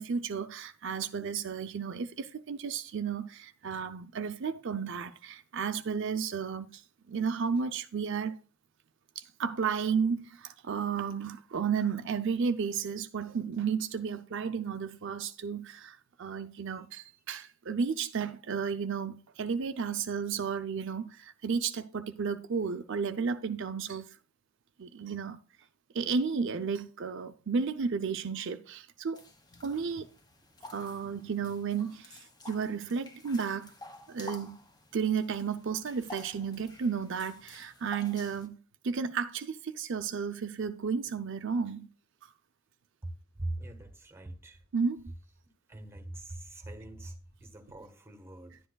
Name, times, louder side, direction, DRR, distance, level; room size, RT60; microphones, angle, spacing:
voice 1, 0.0-6.8 7.1-8.4 9.2-24.2 24.8-25.4 25.9-29.2 29.6-30.1 30.7-33.7 34.1-34.6 34.9-38.6 38.8-41.9 44.7-45.1, right 6 dB, 65° right, 0.5 m, -33 dB
sound 1, 29.1-38.5, left 2 dB, 20° left, 1.2 m, -51 dB
voice 2, 43.0-44.6 45.7-48.6, right 1 dB, 10° right, 1.2 m, -42 dB
10.5 x 10.0 x 2.3 m
head